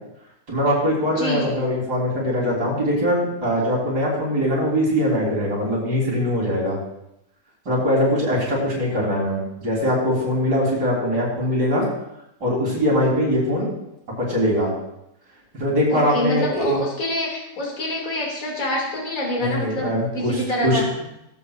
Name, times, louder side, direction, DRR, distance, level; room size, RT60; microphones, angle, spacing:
voice 1, 0.5-6.8 7.7-11.9 12.4-13.7 14.2-14.7 15.6-16.8 19.4-20.8, equal, 80° right, -6 dB, 4.1 m, -22 dB
voice 2, 1.2-1.5 15.9-20.8, equal, 55° left, -2 dB, 2.6 m, -26 dB
17.5 x 8.3 x 2.4 m, 0.87 s
omnidirectional pair, 1.8 m